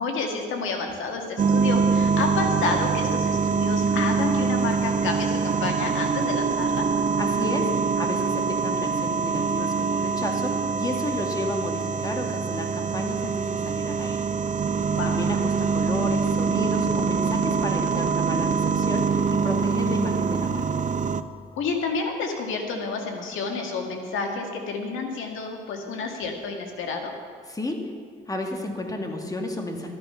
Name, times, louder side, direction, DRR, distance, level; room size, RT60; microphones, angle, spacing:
voice 1, 0.0-6.9 14.9-15.2 21.6-27.1, left 4 dB, 85° left, 3 dB, 1.9 m, -30 dB
sound 1, 1.4-21.2, right 5 dB, 40° right, 0.6 m, -24 dB
voice 2, 7.2-14.3 15.0-20.7 27.5-27.9 28.3-29.9, left 1 dB, 20° left, 3 dB, 2.0 m, -32 dB
13.0 x 11.0 x 5.7 m, 2.1 s
cardioid pair, 90°, 20 cm